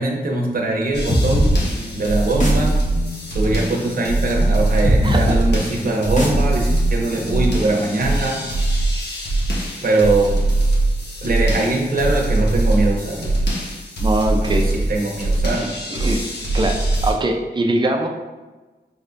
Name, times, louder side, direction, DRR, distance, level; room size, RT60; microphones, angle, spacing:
voice 1, 0.0-1.6 1.9-2.8 3.3-8.5 9.8-10.5 11.2-13.4 14.4-15.8, right 2 dB, 60° right, 0 dB, 0.8 m, -21 dB
sound 1, 0.9-17.1, right 2 dB, 80° left, 1.0 m, -22 dB
sound 2, 1.1-8.5, left 1 dB, 45° left, 1.1 m, -24 dB
voice 2, 5.0-5.4 14.0-14.7 15.9-16.2 16.5-18.1, right 1 dB, 25° right, 2 dB, 0.5 m, -21 dB
5.3 x 3.3 x 2.6 m, 1.2 s
wide cardioid pair, 115°, 17 cm